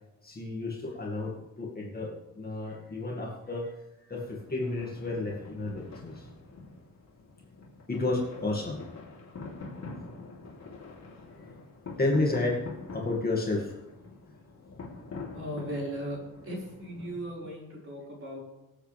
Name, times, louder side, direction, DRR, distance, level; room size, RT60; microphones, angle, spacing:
voice 1, 0.2-3.8 4.1-6.3 7.9-8.9 12.0-12.6 12.9-13.8, left 2 dB, 25° left, -2 dB, 2.2 m, -31 dB
sound 1, 4.1-17.3, left 3 dB, 50° left, 3.6 m, -45 dB
voice 2, 15.3-16.2 16.4-18.4, equal, 40° right, -4 dB, 5.2 m, -37 dB
24.5 x 8.2 x 3.5 m, 1.0 s
wide cardioid pair, 165°, 34 cm